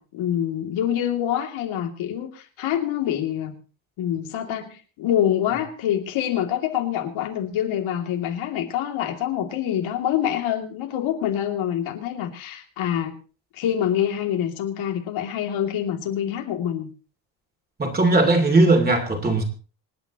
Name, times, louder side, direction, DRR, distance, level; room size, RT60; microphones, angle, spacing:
voice 1, 0.0-3.5 4.0-13.1 13.5-16.9, left 10 dB, 85° left, 2 dB, 2.8 m, -26 dB
voice 2, 17.8-19.4, right 2 dB, 20° right, 4 dB, 2.7 m, -18 dB
26.5 x 9.5 x 3.0 m, 0.38 s
cardioid pair, 175°, 46 cm